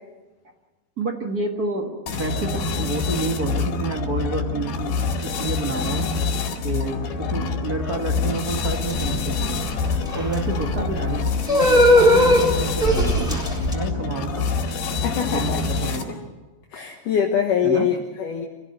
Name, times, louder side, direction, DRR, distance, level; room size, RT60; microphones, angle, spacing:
voice 1, 1.0-4.9 5.2-6.1 6.6-9.6 10.1-13.4 13.7-14.5 15.1-16.2 17.6-17.9, right 3 dB, 45° right, 3 dB, 1.2 m, -29 dB
sound 1, 2.1-16.3, left 4 dB, 80° left, 4.2 m, -26 dB
sound 2, 8.5-13.7, equal, ahead, 5.2 m, -19 dB
voice 2, 15.0-15.6 16.7-18.5, left 8 dB, 65° left, 1 dB, 2.7 m, -23 dB
26.5 x 16.5 x 7.9 m, 1.2 s
omnidirectional pair, 4.4 m